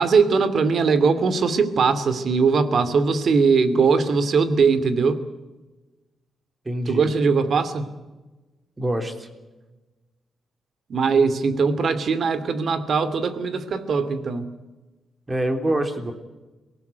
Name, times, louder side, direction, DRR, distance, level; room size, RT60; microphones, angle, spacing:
voice 1, 0.0-5.2 6.9-7.9 10.9-14.5, right 5 dB, 60° right, 12 dB, 2.5 m, -20 dB
voice 2, 6.7-7.1 8.8-9.3 15.3-16.1, right 1 dB, 20° right, 6 dB, 3.6 m, -25 dB
24.0 x 18.0 x 9.4 m, 1.2 s
cardioid pair, 95°, 0 cm